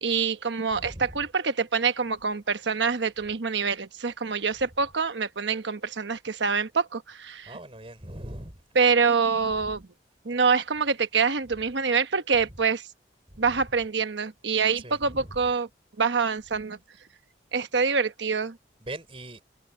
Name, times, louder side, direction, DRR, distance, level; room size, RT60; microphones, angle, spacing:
voice 1, 0.0-7.5 8.7-9.8 10.2-12.8 13.4-15.7 16.0-16.8 17.5-18.6, right 5 dB, 80° right, 1.1 m, -25 dB
voice 2, 0.7-1.2 7.5-8.7 9.6-9.7 13.3-13.6 14.8-15.4 18.8-19.4, right 1 dB, 30° right, 3.9 m, -41 dB
head